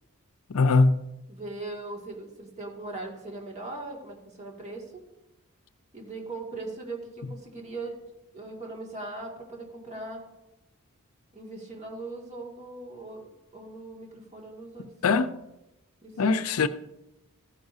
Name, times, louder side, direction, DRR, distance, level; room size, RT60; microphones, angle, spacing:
voice 1, 0.5-1.0 14.8-15.4 16.2-16.7, left 4 dB, 70° left, 0.5 m, -22 dB
voice 2, 1.3-4.8 5.9-8.0 8.3-10.2 11.3-14.9 16.0-16.2, right 2 dB, 30° right, 2.3 m, -39 dB
15.0 x 9.6 x 2.7 m
head